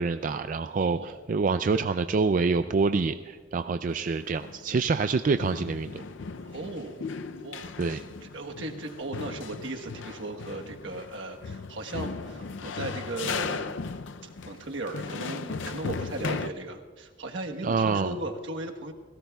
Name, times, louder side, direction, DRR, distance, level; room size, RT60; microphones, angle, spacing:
voice 1, 0.0-6.0 7.8-8.0 17.6-18.1, right 4 dB, 45° right, 9 dB, 0.3 m, -26 dB
voice 2, 0.8-1.1 6.4-7.0 7.4-13.8 14.2-18.9, right 2 dB, 80° right, 3 dB, 1.3 m, -37 dB
sound 1, 3.9-5.1 5.4-16.5, left 4 dB, 80° left, 0.5 m, -37 dB
29.5 x 17.0 x 2.3 m, 1.5 s
head